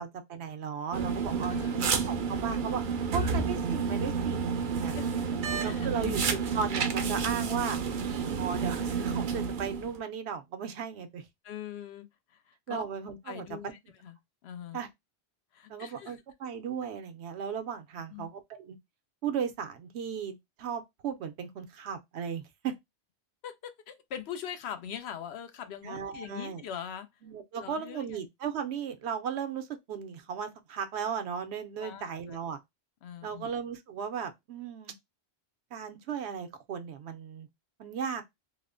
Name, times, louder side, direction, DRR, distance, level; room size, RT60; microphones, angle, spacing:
voice 1, 0.0-2.8 3.1-4.9 5.6-7.8 8.4-11.2 12.7-13.7 14.7-14.9 15.7-18.8 19.2-22.7 25.8-26.6 27.2-32.6 33.2-34.9 35.7-37.5 37.8-38.2, right 7 dB, 80° right, 0.9 m, -36 dB
sound 1, 0.9-10.0, right 5 dB, 60° right, 0.6 m, -30 dB
voice 2, 1.5-1.8 5.0-6.2 11.4-12.8 13.2-14.2 14.4-14.8 15.5-16.2 18.1-18.3 23.4-27.1 27.5-28.2 31.8-32.4 33.0-33.5, left 9 dB, 75° left, 0.8 m, -42 dB
2.9 x 2.0 x 2.4 m
omnidirectional pair, 1.1 m